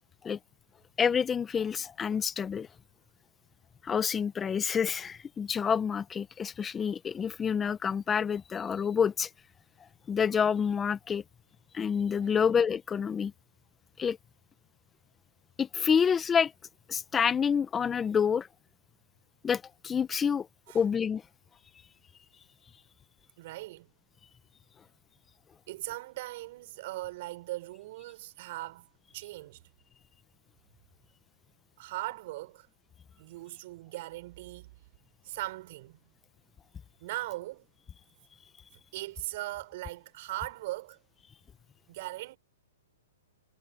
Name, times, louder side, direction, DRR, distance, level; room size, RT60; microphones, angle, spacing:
voice 1, 1.0-2.7 3.8-9.3 10.1-11.2 11.7-13.3 14.0-14.2 15.6-16.5 16.9-18.5 19.4-20.5 20.7-21.2, left 7 dB, 15° left, 1.3 m, -28 dB
voice 2, 12.2-12.5 20.7-20.8 23.4-23.9 25.7-28.9 29.1-29.6 31.8-32.7 33.2-34.7 35.2-36.1 37.0-37.6 38.9-41.0 41.9-42.4, right 18 dB, 50° right, 5.3 m, -39 dB
hypercardioid pair, 130°, 0 cm